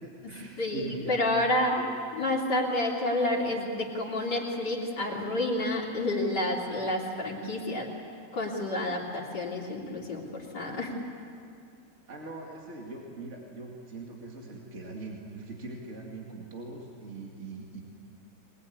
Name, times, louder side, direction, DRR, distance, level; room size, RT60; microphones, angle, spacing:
voice 1, 0.0-1.2 12.1-17.8, right 2 dB, 40° right, -1 dB, 2.6 m, -41 dB
voice 2, 0.6-1.8 2.1-7.9 8.3-10.9, left 1 dB, 70° left, -3 dB, 3.7 m, -29 dB
23.0 x 20.5 x 9.6 m, 2.4 s
omnidirectional pair, 1.9 m